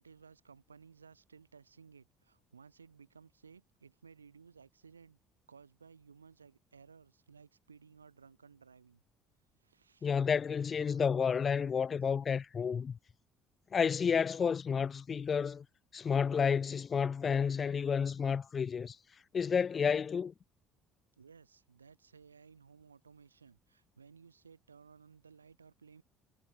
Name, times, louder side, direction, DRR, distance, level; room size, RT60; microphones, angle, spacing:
voice 1, 0.0-5.2 5.5-9.0 9.6-10.1 21.2-26.0, right 5 dB, 85° right, 5.4 m, -58 dB
voice 2, 10.0-13.0 13.7-15.6 15.9-19.0 19.3-20.3, left 6 dB, 35° left, 0.4 m, -31 dB
figure-of-eight pair, 55°, 0 cm